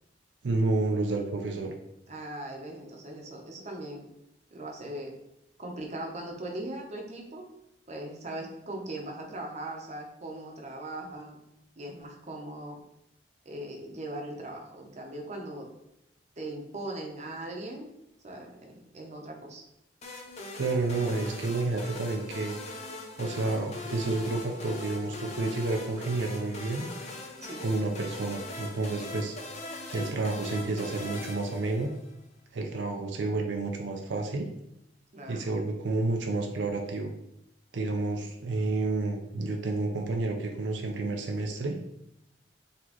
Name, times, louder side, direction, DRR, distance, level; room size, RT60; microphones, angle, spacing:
voice 1, 0.4-1.7 20.6-22.6 23.2-27.1 27.6-29.4 29.9-31.9 32.5-34.5 35.3-37.1 37.7-41.8, right 3 dB, 90° right, 3 dB, 0.5 m, -30 dB
voice 2, 2.1-4.0 4.5-5.2 5.6-7.5 7.9-11.4 11.8-12.8 13.4-15.7 16.4-17.9 18.2-19.6 27.4-27.6 35.1-35.5, right 1 dB, 40° right, 1 dB, 0.7 m, -39 dB
sound 1, 20.0-32.2, left 2 dB, 40° left, 0.6 m, -41 dB
4.1 x 2.9 x 2.9 m, 0.83 s
head